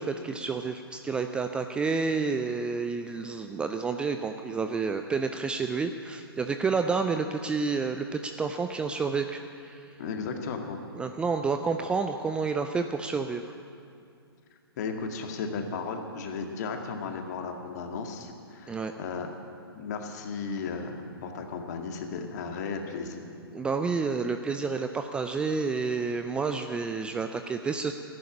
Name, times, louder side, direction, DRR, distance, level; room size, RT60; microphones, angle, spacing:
voice 1, 0.0-9.9 10.9-13.5 18.7-18.9 23.5-27.9, right 4 dB, 5° right, 7 dB, 0.4 m, -30 dB
voice 2, 10.0-10.8 14.8-19.3 19.8-23.2, left 5 dB, 45° left, 4 dB, 2.0 m, -35 dB
15.0 x 11.0 x 8.6 m, 2.4 s
figure-of-eight pair, 120°, 13 cm